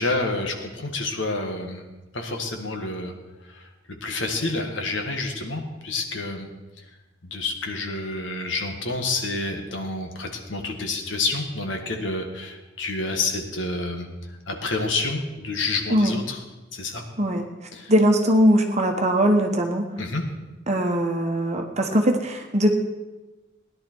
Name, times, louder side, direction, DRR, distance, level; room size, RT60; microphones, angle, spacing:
voice 1, 0.0-1.8 2.1-3.1 3.5-3.6 4.0-6.5 7.3-14.1 14.5-16.4 16.7-17.0 17.7-17.9 20.0-20.2, left 3 dB, 65° left, 4 dB, 1.7 m, -28 dB
voice 2, 17.9-19.8 20.7-22.8, equal, 35° right, 3 dB, 1.2 m, -20 dB
17.0 x 11.0 x 4.6 m, 1.1 s
head